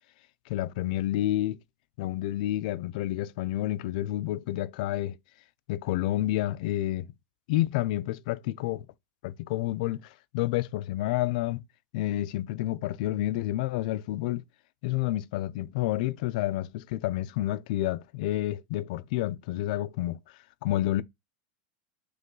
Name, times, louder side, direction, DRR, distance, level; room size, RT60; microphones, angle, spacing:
voice 1, 0.5-1.6 2.0-5.2 5.7-7.1 7.5-8.9 9.2-11.6 11.9-14.4 14.8-20.2 20.6-21.0, left 15 dB, 55° left, 0.3 m, -29 dB
3.8 x 3.1 x 3.7 m
supercardioid pair, 170°, 5 cm